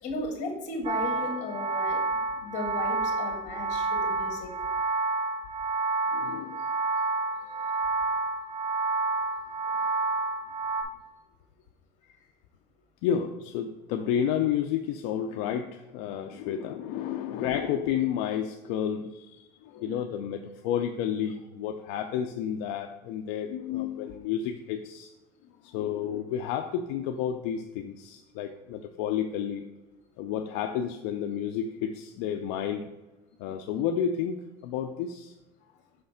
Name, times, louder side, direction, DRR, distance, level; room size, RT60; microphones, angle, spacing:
voice 1, 0.0-2.0 2.4-4.5 7.4-7.7 12.0-12.1, left 2 dB, 50° left, 3 dB, 1.5 m, -36 dB
sound 1, 0.8-10.8, right 3 dB, 35° right, 0.9 m, -29 dB
voice 2, 6.1-6.6 13.0-25.1 25.6-29.6 30.2-32.9 33.4-35.3, left 9 dB, 75° left, 6 dB, 0.4 m, -31 dB
5.7 x 3.2 x 5.5 m, 1.1 s
cardioid pair, 135°, 15 cm